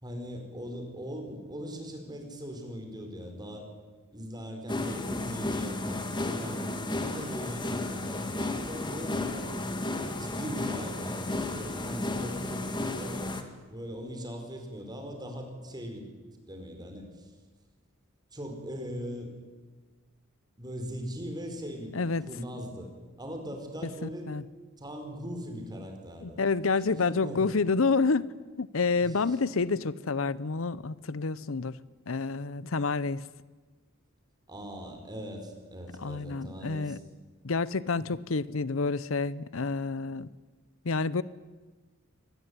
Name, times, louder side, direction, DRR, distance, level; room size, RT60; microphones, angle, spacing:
voice 1, 0.0-3.7 4.1-9.5 10.2-13.3 13.7-16.1 16.5-17.3 18.3-19.3 20.6-21.9 22.2-22.9 23.2-24.3 24.8-26.4 26.9-27.6 29.0-29.7 34.5-37.0, equal, 20° right, 4.9 m, -40 dB
sound 1, 4.7-13.4, left 2 dB, 20° left, 2.1 m, -33 dB
voice 2, 21.9-22.3 24.0-24.4 26.2-31.8 32.1-33.2 36.0-37.0 37.4-40.3 40.8-41.2, left 4 dB, 75° left, 0.8 m, -29 dB
24.5 x 19.5 x 9.7 m
head